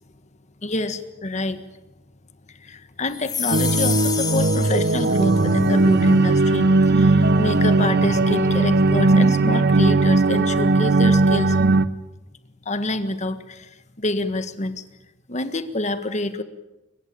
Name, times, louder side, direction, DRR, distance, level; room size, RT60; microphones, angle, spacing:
voice 1, 0.6-1.6 2.5-11.6 12.6-14.8 15.3-16.4, left 2 dB, 40° left, 10 dB, 1.6 m, -27 dB
sound 1, 3.1-5.7, left 6 dB, 20° left, 1.7 m, -29 dB
sound 2, 3.5-11.9, right 2 dB, 55° right, 0.9 m, -18 dB
23.5 x 21.5 x 8.6 m, 1.0 s
head